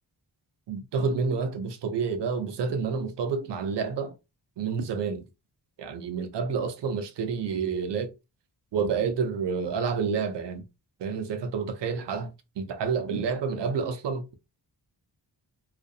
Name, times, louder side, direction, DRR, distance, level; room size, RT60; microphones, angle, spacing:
voice 1, 0.7-4.1 4.6-5.2 5.8-8.1 8.7-10.6 11.0-12.3 12.6-14.3, right 5 dB, 80° right, 0.6 m, -29 dB
2.4 x 2.1 x 2.6 m
wide cardioid pair, 80°, 41 cm